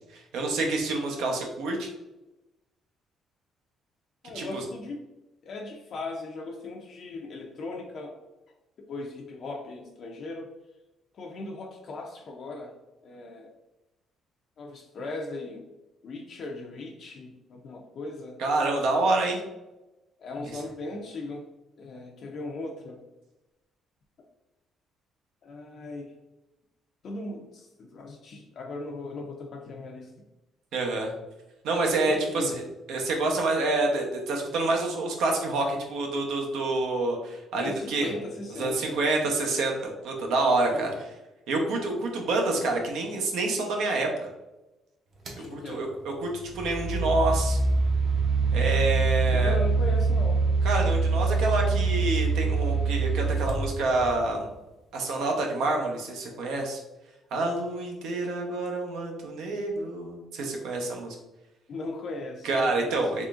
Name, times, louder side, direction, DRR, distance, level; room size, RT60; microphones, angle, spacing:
voice 1, 0.1-1.9 4.3-4.6 18.4-19.4 30.7-31.1 31.6-32.5 32.9-38.1 38.6-40.9 41.5-44.1 45.5-46.3 46.5-47.6 48.5-49.6 50.6-54.5 54.9-56.8 57.3-61.2 62.4-63.2, right 2 dB, 80° right, 1 dB, 0.8 m, -27 dB
voice 2, 4.2-5.0 5.4-8.2 8.8-10.5 11.1-12.8 13.0-13.5 14.6-15.7 16.0-18.4 20.2-21.5 21.8-23.0 25.4-26.1 27.0-30.1 32.1-32.6 33.6-33.7 37.6-39.0 40.7-41.0 45.4-45.9 49.3-50.5 61.7-63.1, left 2 dB, 45° left, 0 dB, 0.4 m, -38 dB
sound 1, 45.3-45.5 46.4-54.4, right 4 dB, 35° right, 0.6 m, -25 dB
3.7 x 3.3 x 2.4 m, 1.0 s
cardioid pair, 165°, 0 cm